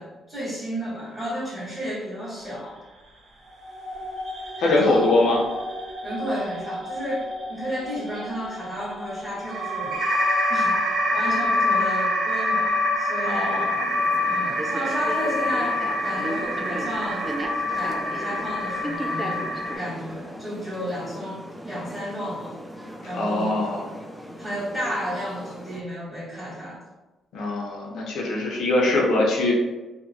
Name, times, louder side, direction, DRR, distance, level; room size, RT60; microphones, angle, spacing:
voice 1, 0.0-2.8 4.8-5.1 6.0-10.0 10.5-13.6 14.3-17.3 17.7-22.7 23.0-23.7 24.4-26.8, equal, 20° right, -11 dB, 1.2 m, -32 dB
sound 1, 3.5-19.8, left 1 dB, 50° right, 0.6 m, -27 dB
voice 2, 4.6-5.4 13.2-13.6 23.1-23.8 27.3-29.5, left 2 dB, 70° left, -3 dB, 0.5 m, -22 dB
sound 2, 13.5-25.8, equal, 5° right, 0.3 m, -37 dB
2.8 x 2.0 x 2.6 m, 1.1 s
cardioid pair, 90°, 0 cm